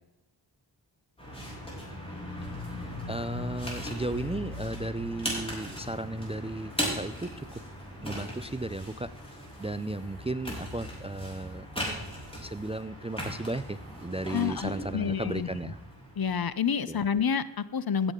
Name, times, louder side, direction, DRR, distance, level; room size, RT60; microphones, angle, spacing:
sound 1, 1.2-16.5, left 1 dB, 10° left, 4.9 m, -38 dB
voice 1, 2.7-7.6 8.0-11.7 12.3-15.8 16.9-17.0, right 2 dB, 15° right, 14 dB, 0.4 m, -35 dB
voice 2, 14.3-15.5 16.2-18.1, left 7 dB, 50° left, 16 dB, 0.7 m, -28 dB
16.0 x 8.2 x 3.7 m, 1.0 s
cardioid pair, 45°, 47 cm